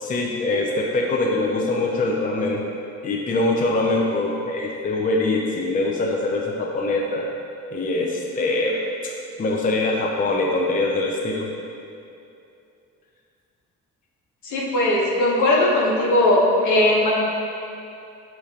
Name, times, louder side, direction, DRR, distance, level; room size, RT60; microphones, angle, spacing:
voice 1, 0.0-2.6 3.0-7.3 7.7-8.8 9.0-9.1 9.4-11.5, left 2 dB, 30° left, 0 dB, 0.5 m, -23 dB
voice 2, 14.4-17.1, left 1 dB, 75° left, -4 dB, 1.0 m, -19 dB
6.0 x 3.1 x 2.8 m, 2.6 s
cardioid pair, 90°, 30 cm